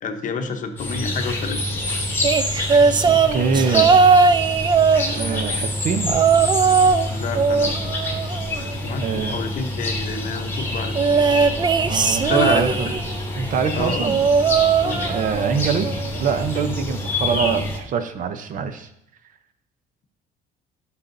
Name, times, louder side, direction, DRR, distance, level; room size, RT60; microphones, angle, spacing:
voice 1, 0.0-1.8 7.1-7.9 8.8-10.9 12.2-12.9 13.7-14.1 14.8-15.2, left 4 dB, 50° left, 6 dB, 0.9 m, -28 dB
sound 1, 0.8-17.8, left 1 dB, 15° left, 2.6 m, -27 dB
sound 2, 2.2-5.5 6.1-7.1 7.3-8.9 10.9-13.1 14.0-15.5 15.8-16.2 17.3-17.4, right 5 dB, 25° right, 0.4 m, -18 dB
voice 2, 3.1-3.9 5.1-6.2 9.0-9.4 11.8-12.9 13.4-14.2 15.1-15.9 16.2-18.9, right 6 dB, 50° right, 10 dB, 0.7 m, -24 dB
11.5 x 5.7 x 2.6 m, 0.77 s
cardioid pair, 110°, 17 cm